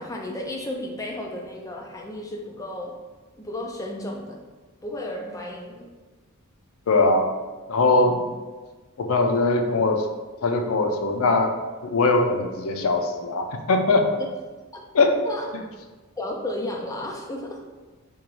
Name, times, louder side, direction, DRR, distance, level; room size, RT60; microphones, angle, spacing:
voice 1, 0.0-3.0 3.4-4.4 4.8-5.9 8.0-8.3 14.7-14.8 15.3-15.5 16.2-17.6, left 1 dB, 15° left, 0 dB, 0.4 m, -33 dB
voice 2, 6.9-7.3 7.7-8.2 9.0-10.1 10.4-11.5 11.8-14.1 14.9-15.2, left 3 dB, 70° left, 5 dB, 0.4 m, -21 dB
3.6 x 2.9 x 3.1 m, 1.3 s
head